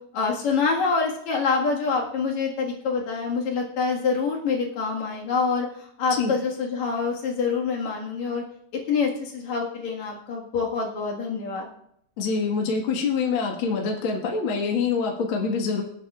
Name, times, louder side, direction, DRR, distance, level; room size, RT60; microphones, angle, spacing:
voice 1, 0.1-8.4 8.7-11.7, left 5 dB, 70° left, -1 dB, 3.1 m, -26 dB
voice 2, 12.2-15.8, left 5 dB, 50° left, 1 dB, 2.2 m, -25 dB
25.5 x 8.5 x 2.4 m, 0.72 s
omnidirectional pair, 3.3 m